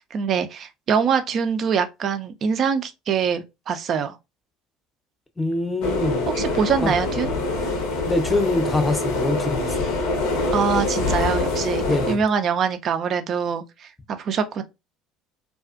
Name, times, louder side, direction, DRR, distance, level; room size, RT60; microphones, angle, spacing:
voice 1, 0.1-4.2 6.4-7.3 10.5-14.6, right 6 dB, 45° right, 0.4 m, -24 dB
voice 2, 5.4-6.3 6.8-6.9 8.1-9.9 11.9-12.2, left 2 dB, 10° left, 0.6 m, -24 dB
sound 1, 5.8-12.1, left 2 dB, 65° left, 0.6 m, -25 dB
2.4 x 2.3 x 2.4 m
figure-of-eight pair, 65°, 0 cm